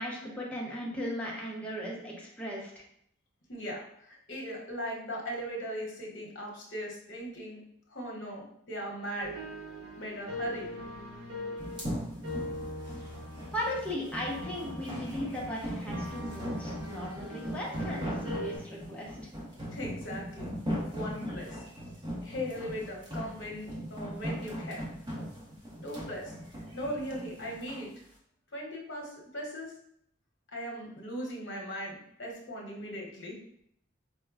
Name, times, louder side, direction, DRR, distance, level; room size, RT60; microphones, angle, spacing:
voice 1, 0.0-2.8 13.5-19.1, equal, 5° left, -4 dB, 0.7 m, -37 dB
voice 2, 3.5-7.6 7.9-9.4 10.0-10.7 19.7-20.5 20.9-21.6 22.2-24.8 25.8-26.3 26.7-28.0 28.5-29.7 30.5-33.4, equal, 65° left, -2 dB, 0.9 m, -38 dB
sound 1, 9.2-18.6, left 1 dB, 75° right, 0.8 m, -41 dB
sound 2, 11.6-27.8, equal, 20° right, 0.9 m, -38 dB
4.4 x 2.1 x 2.3 m, 0.70 s
head